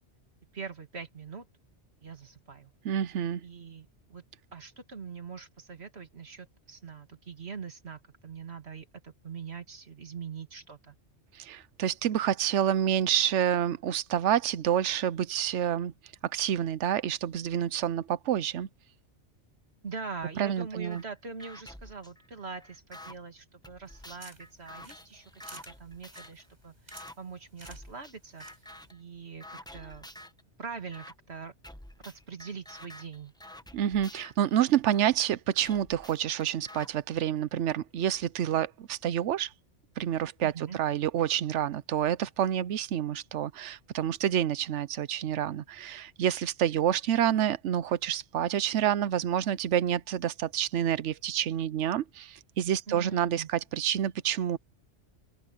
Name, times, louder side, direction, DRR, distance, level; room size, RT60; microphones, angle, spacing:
voice 1, 0.5-1.5 2.0-2.7 3.4-4.2 4.5-11.0 19.8-28.5 28.9-30.1 30.6-31.5 32.0-33.3 40.4-40.8 52.9-53.5, right 5 dB, 65° right, 2.4 m, -43 dB
voice 2, 2.8-3.4 11.3-15.9 16.2-18.7 20.4-21.0 33.7-39.5 40.0-54.6, right 10 dB, 80° right, 1.0 m, -28 dB
sound 1, 20.9-21.0 21.4-23.2 23.6-26.5 26.9-27.2 27.6-28.1 28.4-29.0 29.4-30.4 30.9-31.1 31.6-35.1 35.6-36.9, left 1 dB, 5° left, 0.8 m, -49 dB
sound 2, 23.9-28.9, right 1 dB, 35° right, 7.6 m, -54 dB
open air
omnidirectional pair, 1.2 m